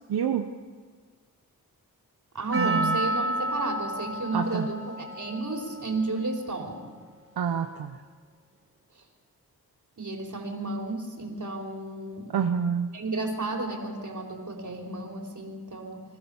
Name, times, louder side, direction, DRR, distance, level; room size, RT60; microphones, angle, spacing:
voice 1, 0.1-0.5 2.5-3.0 4.3-4.7 7.4-8.0 12.3-12.9, right 7 dB, 80° right, 6 dB, 1.0 m, -27 dB
voice 2, 2.3-6.9 10.0-12.3 12.9-16.0, right 2 dB, 50° right, 1 dB, 4.6 m, -32 dB
Percussion, 2.5-6.9 7.5-7.6, right 1 dB, 35° right, 3.9 m, -31 dB
27.0 x 14.0 x 7.2 m, 1.5 s
cardioid pair, 45°, 37 cm